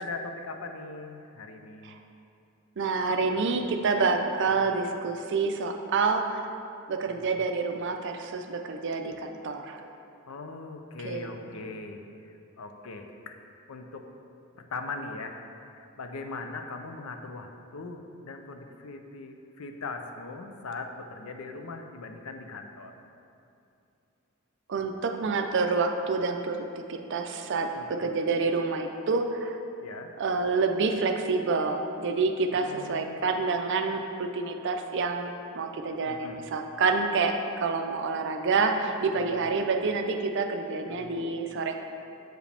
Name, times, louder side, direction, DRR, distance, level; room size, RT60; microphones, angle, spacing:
voice 1, 0.0-1.9 4.6-4.8 7.1-7.4 10.3-13.4 13.7-14.1 14.5-15.5 15.7-22.9 27.7-28.2 29.8-30.1 32.5-33.2 36.0-36.5 39.1-39.5 40.9-41.1, left 3 dB, 80° left, 5 dB, 0.5 m, -40 dB
voice 2, 2.8-6.5 6.9-9.8 11.0-11.6 24.7-27.7 28.0-29.6 30.2-41.7, right 4 dB, 55° right, 5 dB, 0.5 m, -28 dB
7.7 x 4.9 x 3.4 m, 2.6 s
head